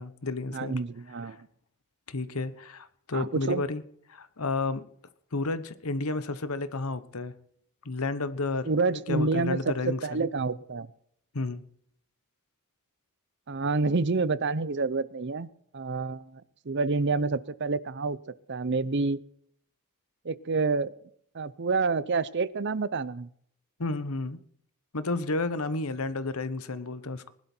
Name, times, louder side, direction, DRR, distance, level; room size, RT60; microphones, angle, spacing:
voice 1, 0.0-0.7 2.1-3.8 4.1-4.8 5.3-7.3 7.8-10.2 11.3-11.6 23.8-24.4 24.9-27.3, left 3 dB, 80° left, 14 dB, 1.1 m, -31 dB
voice 2, 0.5-1.4 3.1-3.6 8.7-10.9 13.5-15.5 15.7-18.2 18.5-19.2 20.2-20.9 21.3-23.3, right 4 dB, 55° right, 18 dB, 0.7 m, -28 dB
20.0 x 11.5 x 4.5 m, 0.65 s
head